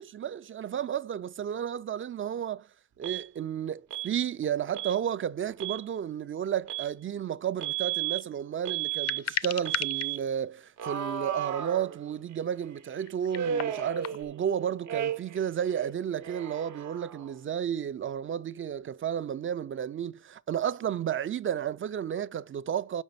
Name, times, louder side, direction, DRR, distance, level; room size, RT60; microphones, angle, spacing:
voice 1, 0.0-2.7 3.0-23.0, right 9 dB, 40° right, 0.4 m, -32 dB
Alarm, 3.0-3.2 3.9-4.1 4.7-5.0 5.5-5.8 6.7-6.9 7.6-8.2 8.7-9.2 9.7-10.2 10.8-12.3 13.3-14.5 14.9-15.4 15.7-17.4, right 10 dB, 70° right, 0.9 m, -34 dB
sound 1, 8.9-10.1 11.0-11.1 13.0-14.3, left 9 dB, 55° left, 0.5 m, -34 dB
5.9 x 5.3 x 6.8 m
wide cardioid pair, 140°, 31 cm